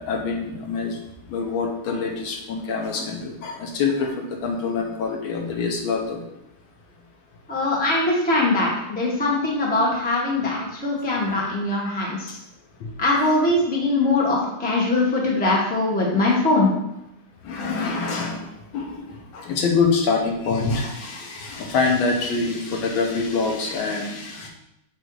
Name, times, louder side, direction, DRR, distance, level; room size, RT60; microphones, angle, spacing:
voice 1, 0.1-1.0 1.3-6.2 12.8-12.9 17.4-24.5, left 4 dB, 70° left, 1 dB, 1.6 m, -25 dB
voice 2, 7.5-12.4 13.0-16.7, left 2 dB, 10° left, -3 dB, 0.6 m, -21 dB
7.6 x 2.6 x 4.7 m, 0.85 s
omnidirectional pair, 2.4 m